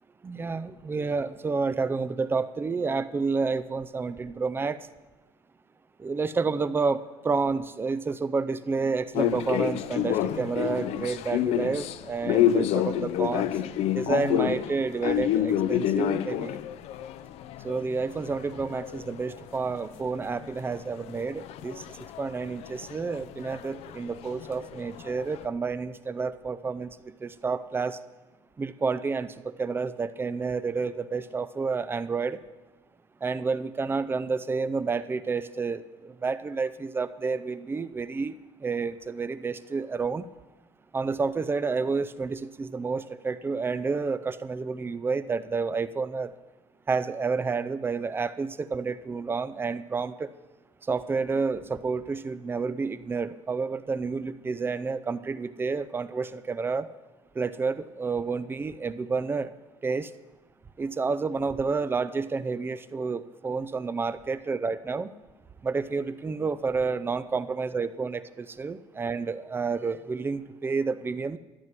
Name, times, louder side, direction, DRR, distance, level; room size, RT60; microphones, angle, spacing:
voice 1, 0.2-4.8 6.0-13.5 13.9-16.6 17.6-21.8 22.2-28.0 28.6-32.4 33.2-38.4 38.6-40.3 40.9-46.3 46.9-50.3 50.9-56.9 57.4-59.5 59.8-60.1 60.8-65.1 65.6-71.4, right 4 dB, 20° right, 14 dB, 0.5 m, -30 dB
sound 1, 9.1-20.0 20.2-25.4, left 11 dB, 70° left, 0.5 m, -29 dB
12.5 x 9.4 x 6.0 m, 1.1 s
cardioid pair, 135°, 11 cm